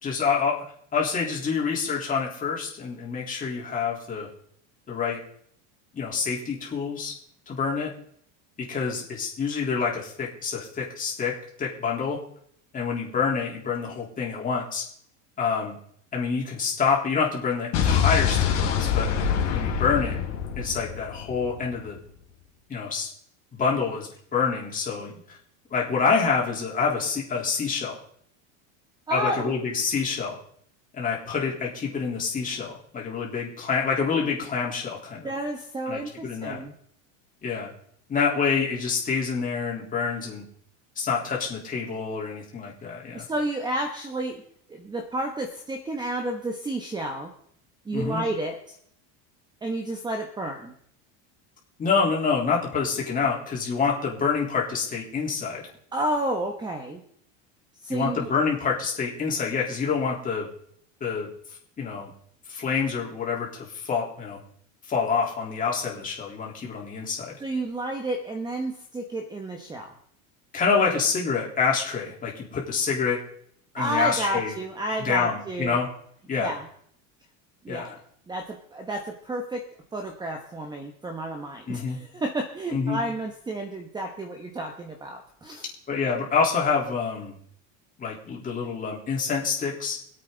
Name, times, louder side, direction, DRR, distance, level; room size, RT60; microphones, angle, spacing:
voice 1, 0.0-0.6 0.9-4.3 4.9-5.2 5.9-7.1 7.5-7.9 8.6-12.2 12.7-14.8 15.4-15.8 16.1-19.1 19.5-20.2 20.6-22.0 22.7-23.1 23.5-25.1 25.7-27.9 29.1-30.4 30.9-35.3 35.9-36.6 37.4-37.7 38.1-40.4 41.0-43.3 47.9-48.2 51.8-55.6 57.9-60.5 61.0-61.3 61.8-62.1 62.5-64.4 64.9-67.4 70.5-73.2 73.7-74.5 75.0-75.9 76.3-76.5 77.7-78.0 81.7-82.0 82.7-83.0 85.9-87.4 88.0-90.0, left 5 dB, 20° left, -3 dB, 3.7 m, -27 dB
Explosion, 17.7-21.8, left 8 dB, 40° left, 3.5 m, -25 dB
voice 2, 29.1-29.6 35.2-36.7 43.1-44.4 44.7-47.3 47.8-48.8 49.6-50.7 55.9-57.0 57.8-58.3 67.4-69.9 73.8-75.8 76.4-76.7 77.6-77.9 78.3-79.6 79.9-85.7, right 1 dB, 10° right, 3 dB, 1.1 m, -31 dB
24.0 x 8.4 x 4.0 m, 0.66 s
supercardioid pair, 155°, 39 cm